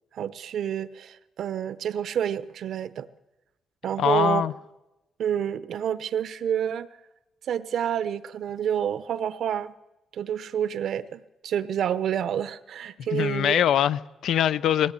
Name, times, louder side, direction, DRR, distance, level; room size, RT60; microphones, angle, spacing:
voice 1, 0.1-3.1 3.8-4.4 5.2-6.9 7.5-9.7 10.1-13.6, right 9 dB, 65° right, 1.0 m, -28 dB
voice 2, 4.0-4.5 13.1-14.9, left 10 dB, 75° left, 0.7 m, -23 dB
21.0 x 17.0 x 10.0 m
cardioid pair, 155°, 0 cm